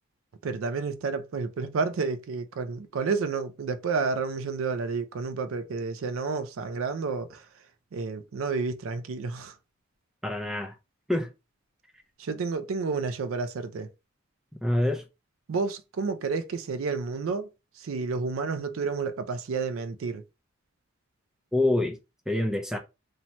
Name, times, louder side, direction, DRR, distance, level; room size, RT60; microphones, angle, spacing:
voice 1, 0.4-7.4 7.9-9.5 12.2-13.9 15.5-17.5 17.8-20.2, right 4 dB, 80° right, 0.4 m, -30 dB
voice 2, 10.2-10.7 11.1-11.3 14.6-15.0 21.5-22.0 22.3-22.8, left 1 dB, 5° right, 0.4 m, -26 dB
2.7 x 2.2 x 2.9 m
head